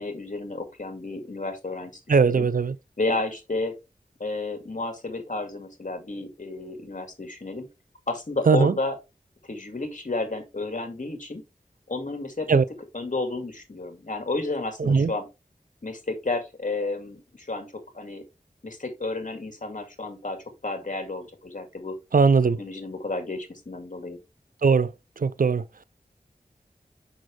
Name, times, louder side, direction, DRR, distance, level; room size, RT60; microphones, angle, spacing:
voice 1, 0.0-2.5 3.0-3.8 4.2-7.7 8.1-9.0 9.4-11.4 11.9-12.6 12.9-15.3 15.8-18.2 18.6-21.9 22.6-24.2, left 2 dB, 55° left, 2.3 m, -31 dB
voice 2, 2.1-2.7 8.5-8.7 12.5-12.6 14.8-15.1 22.1-22.6 24.6-24.9 25.2-25.6, right 5 dB, 65° right, 0.5 m, -19 dB
6.3 x 6.1 x 3.3 m
wide cardioid pair, 45°, 15 cm